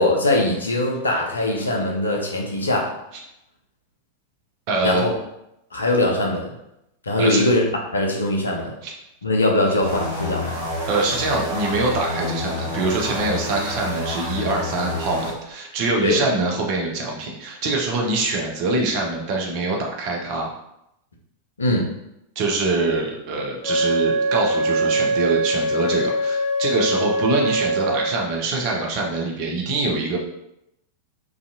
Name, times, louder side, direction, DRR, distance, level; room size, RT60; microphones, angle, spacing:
voice 1, 0.0-2.9 4.8-5.1 5.7-6.5 7.0-8.7 9.2-10.6 16.0-16.2 21.6-21.9, left 1 dB, 75° left, 0 dB, 0.5 m, -21 dB
voice 2, 4.7-5.0 7.2-7.4 8.8-8.9 10.9-20.5 22.4-30.2, right 3 dB, 45° right, -1 dB, 0.6 m, -24 dB
sound 1, 9.8-15.3, left 1 dB, 75° right, 1.0 m, -28 dB
Wind instrument woodwind instrument, 23.6-28.2, right 1 dB, 15° left, 1.3 m, -22 dB
2.5 x 2.4 x 2.7 m, 0.83 s
figure-of-eight pair, 90°, 0 cm